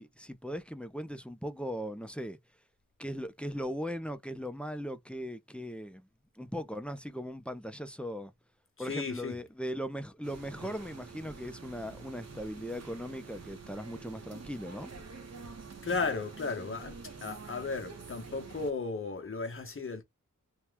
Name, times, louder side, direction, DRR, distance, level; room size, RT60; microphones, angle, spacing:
voice 1, 0.0-2.4 3.0-6.1 6.4-8.3 8.8-14.9, equal, 5° left, 0.5 m, -39 dB
voice 2, 8.8-9.4 15.8-20.0, left 4 dB, 40° left, 1.0 m, -35 dB
sound 1, 10.2-18.7, right 4 dB, 55° right, 0.8 m, -47 dB
2.9 x 2.3 x 3.3 m
wide cardioid pair, 75°, 32 cm